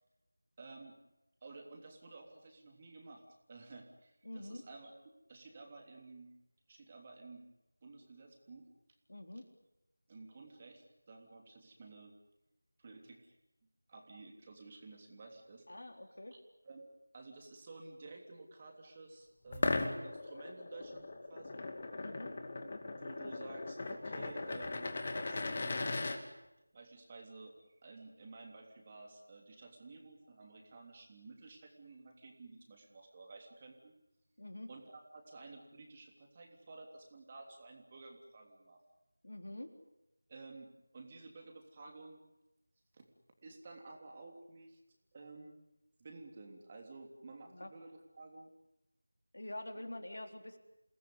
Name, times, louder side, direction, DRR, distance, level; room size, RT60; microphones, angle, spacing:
voice 1, 0.6-1.0 1.4-3.2 3.5-4.9 5.3-6.3 6.7-7.5 7.8-8.7 10.1-12.1 12.8-13.3 13.9-15.6 16.6-16.8 17.1-21.6 22.6-25.8 26.7-27.5 27.8-33.9 34.7-38.8 40.3-42.2 42.9-43.1 43.4-44.8 45.1-45.6 46.0-48.5 49.7-49.8, right 3 dB, 20° right, 2 dB, 3.2 m, -53 dB
voice 2, 4.2-4.6 9.1-9.5 15.7-16.4 21.9-22.4 34.4-34.7 39.2-39.7 47.5-47.7 49.3-50.6, left 1 dB, 55° left, 5 dB, 3.7 m, -46 dB
sound 1, 19.5-26.2, left 3 dB, 30° left, 2.5 m, -38 dB
28.5 x 19.5 x 9.7 m, 0.94 s
figure-of-eight pair, 170°, 0 cm